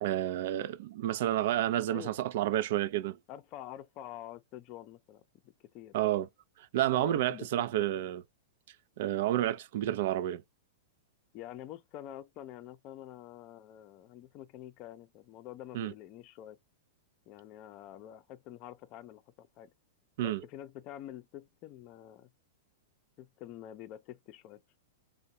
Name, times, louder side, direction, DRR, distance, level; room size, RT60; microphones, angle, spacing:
voice 1, 0.0-3.2 5.9-6.3 6.6-8.2 9.0-10.4 15.7-15.9 20.2-20.4, right 13 dB, 60° right, 0.4 m, -30 dB
voice 2, 1.9-2.3 3.3-6.0 6.9-7.7 11.3-16.6 17.3-19.7 20.2-22.3 23.2-24.6, left 12 dB, 40° left, 0.5 m, -47 dB
3.6 x 2.2 x 2.7 m
hypercardioid pair, 115°, 0 cm